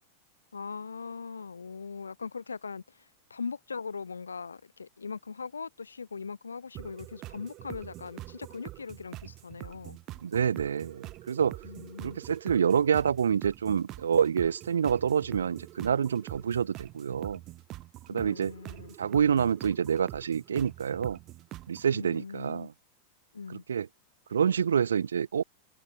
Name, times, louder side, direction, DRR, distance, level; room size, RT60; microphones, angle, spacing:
voice 1, 0.5-10.0 11.6-12.2 18.1-18.9 21.9-22.7 23.3-23.6, left 5 dB, 75° left, 5.5 m, -40 dB
sound 1, 6.7-21.9, right 17 dB, 35° right, 3.6 m, -45 dB
voice 2, 10.2-11.6 12.0-17.4 18.1-18.5 19.0-21.2 21.7-22.7 23.5-23.9 24.3-25.4, right 7 dB, 70° right, 1.0 m, -27 dB
figure-of-eight pair, 90°, 0 cm